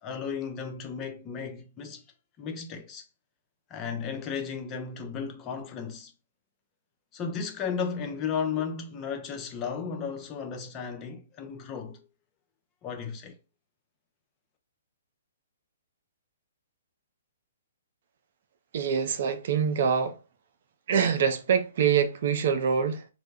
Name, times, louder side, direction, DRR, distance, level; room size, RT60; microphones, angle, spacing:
voice 1, 0.0-2.0 2.4-3.0 3.7-6.1 7.1-12.0 12.8-13.3, left 6 dB, 25° left, 0.5 m, -34 dB
voice 2, 18.7-20.2 20.9-23.1, right 7 dB, 55° right, 0.4 m, -25 dB
2.1 x 2.0 x 3.3 m
hypercardioid pair, 130°, 0 cm